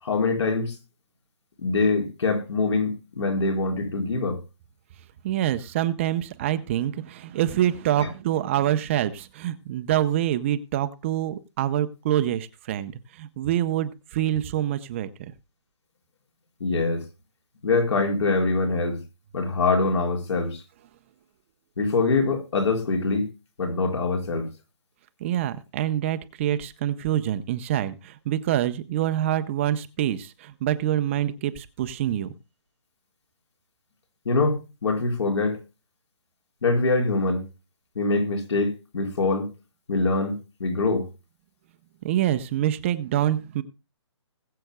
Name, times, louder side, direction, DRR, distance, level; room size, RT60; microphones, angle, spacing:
voice 1, 0.0-0.8 1.6-4.4 8.0-8.1 16.6-17.0 17.6-19.0 19.3-20.6 21.8-23.3 23.6-24.5 34.2-35.6 36.6-37.4 37.9-39.5 39.9-41.1, left 3 dB, 70° left, 4.7 m, -24 dB
voice 2, 5.2-15.3 25.2-32.3 42.0-43.6, right 12 dB, 25° right, 0.6 m, -26 dB
20.5 x 7.7 x 2.2 m
hypercardioid pair, 155°, 15 cm